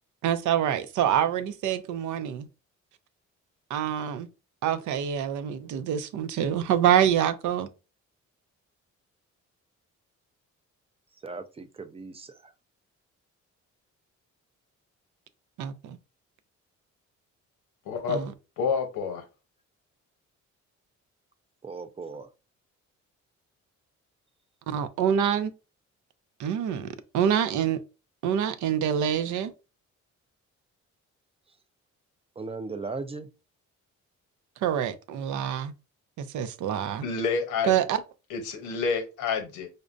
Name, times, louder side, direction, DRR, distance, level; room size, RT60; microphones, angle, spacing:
voice 1, 0.2-2.5 3.7-4.3 4.6-7.7 15.6-16.0 18.1-18.3 24.7-25.5 26.4-27.8 28.2-29.5 34.6-35.7 36.2-37.0 37.6-38.0, right 9 dB, 75° right, 0.5 m, -26 dB
voice 2, 11.2-12.5 21.6-22.3 32.4-33.3, right 4 dB, 20° right, 0.4 m, -37 dB
voice 3, 17.9-18.2 18.6-19.2 37.0-37.8 38.3-39.7, left 5 dB, 90° left, 0.9 m, -28 dB
5.1 x 2.1 x 2.5 m
cardioid pair, 90°, 30 cm